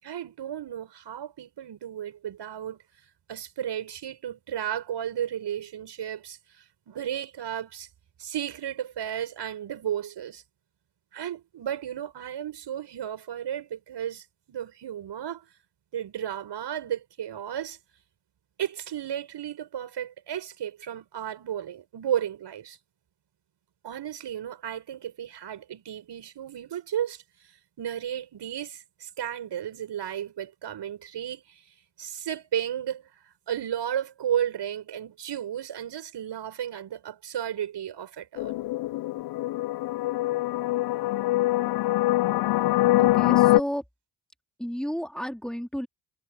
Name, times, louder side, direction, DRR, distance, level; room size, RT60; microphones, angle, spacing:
voice 1, 0.0-2.8 3.3-7.9 8.2-10.4 11.1-15.5 15.9-17.8 18.6-22.8 23.8-31.7 32.0-33.1 33.5-38.6, right 10 dB, 55° right, 6.4 m, -33 dB
sound 1, 38.4-43.6, left 17 dB, 50° left, 0.6 m, -23 dB
voice 2, 43.0-43.8 44.6-45.9, equal, ahead, 4.1 m, -32 dB
hypercardioid pair, 50°, 48 cm